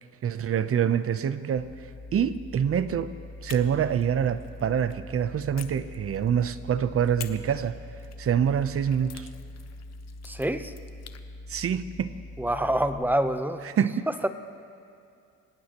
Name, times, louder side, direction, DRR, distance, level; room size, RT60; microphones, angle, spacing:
voice 1, 0.2-1.7 2.1-3.1 3.4-7.7 8.2-9.3 11.5-12.1 13.6-14.1, right 8 dB, 50° right, 12 dB, 0.8 m, -26 dB
sound 1, 1.6-13.0, left 1 dB, 80° left, 2.3 m, -43 dB
sound 2, 3.5-5.0 5.6-6.6 7.2-11.2, left 9 dB, 60° left, 0.9 m, -48 dB
voice 2, 10.2-10.7 12.4-13.7 14.2-14.3, right 1 dB, 5° right, 9 dB, 0.8 m, -26 dB
25.5 x 17.5 x 3.0 m, 2.5 s
cardioid pair, 90°, 30 cm